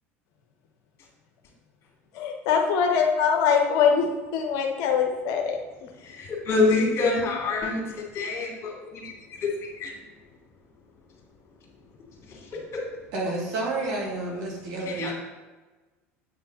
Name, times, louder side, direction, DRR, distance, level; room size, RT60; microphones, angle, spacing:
voice 1, 2.1-4.1 4.3-5.9, left 6 dB, 55° left, 3 dB, 0.8 m, -23 dB
voice 2, 6.0-9.5 9.8-9.9 12.2-12.4 12.7-12.8 14.9-15.1, left 3 dB, 35° left, -1 dB, 2.4 m, -26 dB
voice 3, 13.1-15.1, right 2 dB, 55° right, -4 dB, 2.6 m, -30 dB
8.1 x 5.6 x 4.0 m, 1.2 s
figure-of-eight pair, 70°, 8 cm